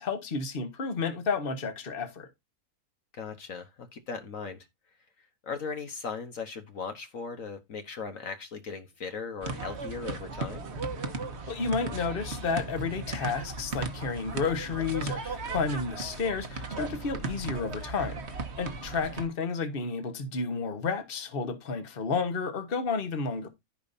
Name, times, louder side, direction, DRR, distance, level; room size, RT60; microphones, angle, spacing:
voice 1, 0.0-2.3 11.5-23.5, left 4 dB, 40° left, 1.4 m, -31 dB
voice 2, 3.1-4.7 5.4-10.6, left 5 dB, 60° left, 1.4 m, -38 dB
sound 1, 9.4-19.3, right 3 dB, 45° right, 1.4 m, -36 dB
15.0 x 5.2 x 2.6 m
omnidirectional pair, 1.6 m